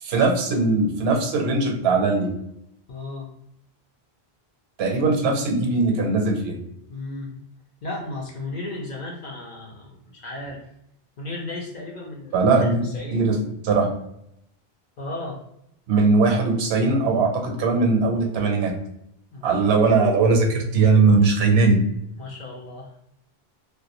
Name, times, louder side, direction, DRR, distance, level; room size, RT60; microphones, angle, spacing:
voice 1, 0.0-2.3 4.8-6.6 12.3-12.8 13.1-13.4 13.6-13.9 15.9-18.8 19.4-21.8, right 3 dB, 75° right, 3 dB, 0.8 m, -20 dB
voice 2, 2.9-3.3 6.9-7.4 7.8-10.6 11.2-13.2 15.0-15.4 19.3-19.6 22.2-23.0, left 2 dB, 55° left, -2 dB, 0.5 m, -35 dB
2.4 x 2.1 x 2.8 m, 0.77 s
omnidirectional pair, 1.1 m